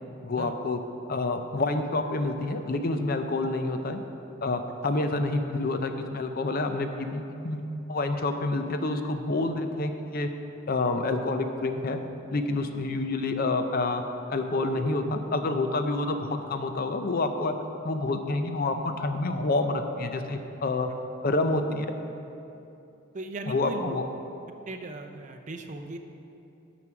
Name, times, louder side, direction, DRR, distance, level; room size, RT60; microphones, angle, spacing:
voice 1, 0.2-0.8 1.1-4.0 4.4-10.3 10.7-12.0 12.3-14.0 14.3-17.5 17.8-20.9 21.2-21.9 23.5-24.1, left 2 dB, 45° left, 7 dB, 0.5 m, -28 dB
voice 2, 23.1-24.0 24.7-26.0, right 2 dB, 35° right, 5 dB, 0.5 m, -38 dB
9.5 x 6.0 x 5.9 m, 2.8 s
head